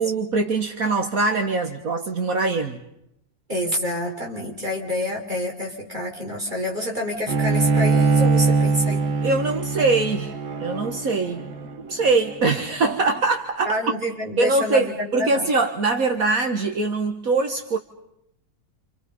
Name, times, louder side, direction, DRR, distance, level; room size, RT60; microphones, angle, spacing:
voice 1, 0.0-2.8 9.2-11.5 11.8-13.8 14.4-17.8, right 3 dB, 65° right, 5 dB, 2.1 m, -23 dB
voice 2, 3.5-9.1 13.6-15.5, left 1 dB, 30° right, -1 dB, 6.2 m, -28 dB
Bowed string instrument, 7.3-12.6, right 4 dB, 85° right, 2.1 m, -22 dB
29.5 x 28.5 x 5.5 m, 0.79 s
omnidirectional pair, 1.6 m